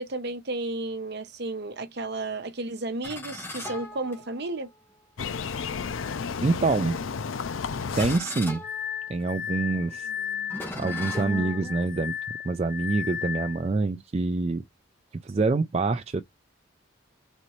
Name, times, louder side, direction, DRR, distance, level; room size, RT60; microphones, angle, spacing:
voice 1, 0.0-4.7, right 2 dB, 55° right, 0.9 m, -33 dB
sound 1, 3.0-4.7 5.5-5.7 6.5-7.0 7.8-11.9, left 1 dB, 10° left, 1.6 m, -39 dB
sound 2, 5.2-8.2, left 5 dB, 75° left, 0.5 m, -32 dB
voice 2, 6.4-7.0 8.0-8.6 9.1-10.1 10.8-12.2 12.4-14.6 15.2-16.2, right 3 dB, 30° right, 0.4 m, -26 dB
Glass, 8.6-13.7, left 9 dB, 45° left, 0.8 m, -34 dB
4.2 x 4.0 x 3.1 m
head